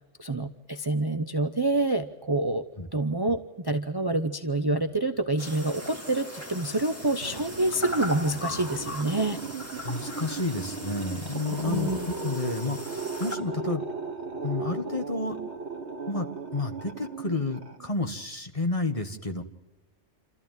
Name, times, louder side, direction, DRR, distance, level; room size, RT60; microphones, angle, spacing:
voice 1, 0.2-9.4 11.7-12.1, right 2 dB, 25° right, 8 dB, 0.8 m, -27 dB
sound 1, 5.4-13.4, left 1 dB, 10° left, 2.5 m, -39 dB
sound 2, 7.0-18.2, right 4 dB, 70° right, 2.0 m, -37 dB
voice 2, 9.8-13.8 14.4-15.4 16.1-19.4, left 3 dB, 30° left, 5 dB, 1.6 m, -31 dB
27.5 x 14.5 x 9.2 m, 1.2 s
omnidirectional pair, 1.2 m